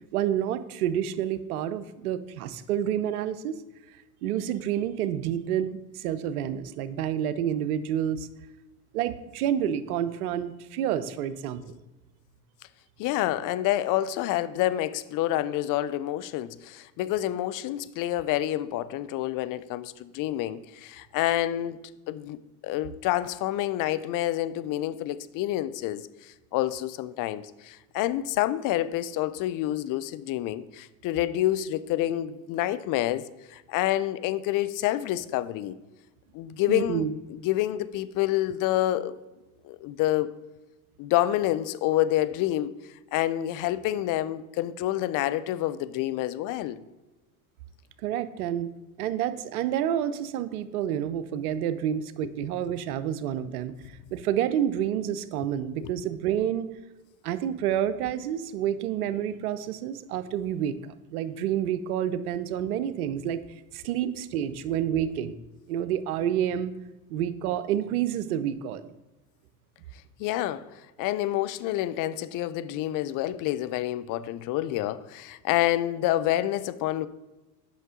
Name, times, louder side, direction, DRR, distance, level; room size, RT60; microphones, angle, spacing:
voice 1, 0.1-3.6 4.2-8.3 8.9-11.7 36.7-37.1 48.0-48.7 49.0-53.7 54.1-56.7 57.2-63.4 63.7-65.3 65.7-66.7 67.1-68.9, right 10 dB, 80° right, 0.6 m, -29 dB
voice 2, 13.0-21.8 22.1-35.8 36.3-39.1 39.6-40.3 41.0-42.7 43.1-46.8 55.8-55.9 70.2-70.7 71.0-77.1, left 14 dB, 50° left, 0.5 m, -28 dB
8.4 x 5.8 x 3.7 m
hypercardioid pair, 75°, 44 cm